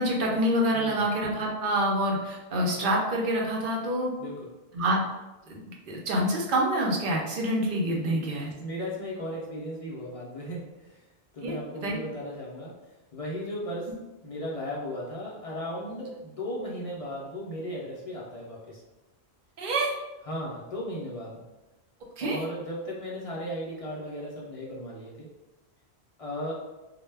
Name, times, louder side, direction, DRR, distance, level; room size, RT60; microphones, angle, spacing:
voice 1, 0.0-4.1 4.7-5.0 5.5-8.5 11.4-11.6 11.8-12.0 19.6-19.9 22.2-22.4, right 1 dB, 60° right, -1 dB, 0.6 m, -27 dB
voice 2, 8.1-11.0 11.3-12.8 13.1-13.9 14.2-18.8 20.3-21.4 22.2-25.3 26.2-26.5, equal, 55° left, -4 dB, 0.4 m, -36 dB
2.1 x 2.0 x 3.2 m, 1.1 s
omnidirectional pair, 1.1 m